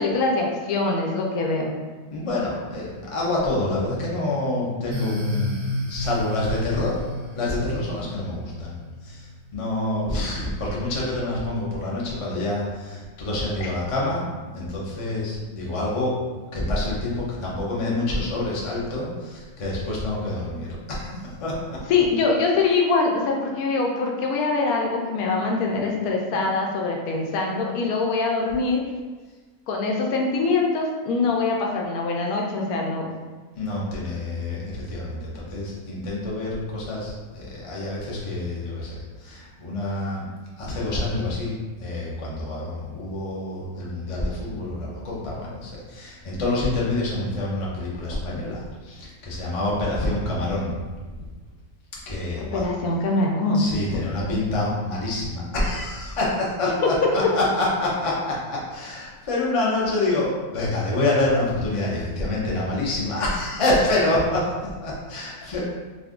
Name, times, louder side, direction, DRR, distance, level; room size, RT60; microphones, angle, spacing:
voice 1, 0.0-1.7 13.6-13.7 21.9-28.8 29.7-33.1 52.4-54.4 56.6-57.1, left 3 dB, 75° left, 0 dB, 1.0 m, -23 dB
voice 2, 2.1-7.0 7.3-8.7 9.0-9.2 9.5-14.2 14.5-16.2 16.5-21.1 21.4-21.8 26.3-26.5 33.6-40.3 40.6-41.5 41.8-50.7 52.1-52.6 53.5-65.6, left 2 dB, 45° left, -5 dB, 0.4 m, -27 dB
sound 1, 4.9-9.5, left 1 dB, 85° right, 1.1 m, -31 dB
2.6 x 2.4 x 3.5 m, 1.3 s
omnidirectional pair, 1.6 m